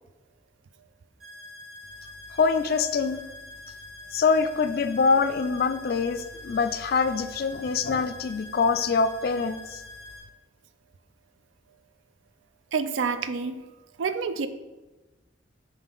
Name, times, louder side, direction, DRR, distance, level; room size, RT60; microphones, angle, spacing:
sound 1, 1.2-10.2, left 2 dB, 45° right, 1.7 m, -45 dB
voice 1, 2.4-3.2 4.1-9.8, left 5 dB, 50° left, 10 dB, 0.3 m, -24 dB
voice 2, 12.7-13.7 14.0-14.5, right 5 dB, 80° right, 10 dB, 0.4 m, -28 dB
5.5 x 3.2 x 5.3 m, 1.1 s
head